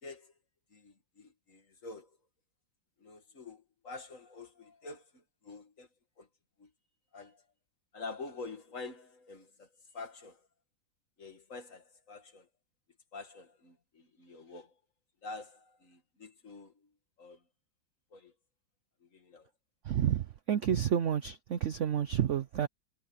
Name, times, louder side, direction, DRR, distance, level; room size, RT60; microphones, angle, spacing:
voice 1, 0.0-0.3 0.7-2.2 3.0-5.9 6.2-6.3 6.6-6.7 7.1-7.5 7.9-10.5 11.2-12.5 13.1-14.7 15.2-16.9 17.2-17.4 18.1-18.3 19.0-19.5, left 3 dB, 45° left, 2.3 m, -47 dB
voice 2, 19.9-22.7, right 9 dB, 65° right, 0.7 m, -30 dB
omnidirectional pair, 2.0 m